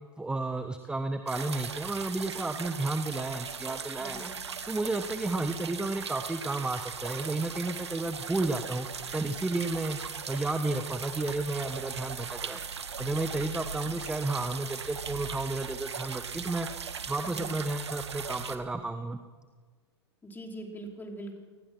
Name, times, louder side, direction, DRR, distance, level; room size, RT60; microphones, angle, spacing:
voice 1, 0.2-4.3 4.6-10.0 10.3-12.6 13.0-16.7 17.1-19.2, right 2 dB, 5° right, 8 dB, 1.1 m, -32 dB
sound 1, 1.3-18.6, right 6 dB, 75° right, 1.9 m, -38 dB
voice 2, 4.0-4.4 17.2-17.5 20.2-21.4, right 1 dB, 15° left, 2 dB, 4.8 m, -42 dB
28.5 x 19.5 x 6.2 m, 1.5 s
figure-of-eight pair, 95°, 14 cm